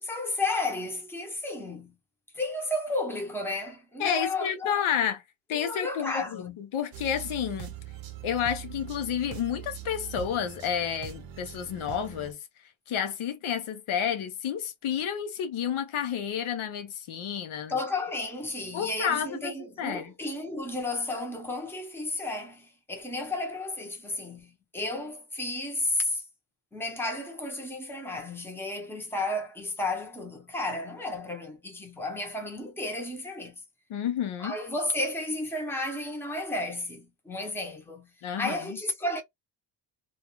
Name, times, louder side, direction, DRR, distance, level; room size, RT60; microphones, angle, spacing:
voice 1, 0.0-2.0 2.3-4.8 5.5-6.6 17.7-26.2 26.7-33.6 34.4-38.1 38.4-39.2, left 2 dB, 5° left, 0.7 m, -33 dB
voice 2, 4.0-5.2 5.5-7.7 8.2-12.4 12.9-17.8 18.7-19.5 19.8-20.1 33.9-34.6 38.2-38.8, left 8 dB, 80° left, 0.8 m, -30 dB
sound 1, 6.9-12.3, right 12 dB, 50° right, 0.6 m, -42 dB
2.3 x 2.3 x 2.9 m
cardioid pair, 120°, 48 cm